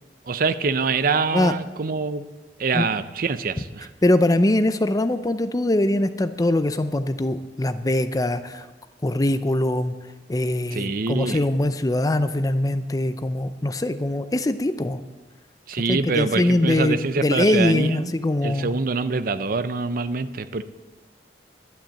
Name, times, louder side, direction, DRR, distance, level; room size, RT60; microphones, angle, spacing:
voice 1, 0.3-2.3 2.6-3.9 10.7-11.4 15.7-18.1 18.4-20.6, right 4 dB, 50° right, 11 dB, 0.6 m, -25 dB
voice 2, 4.0-8.7 9.0-9.9 10.3-15.0 15.9-18.7, left 1 dB, 20° left, 11 dB, 0.5 m, -22 dB
11.5 x 10.0 x 7.7 m, 1.2 s
head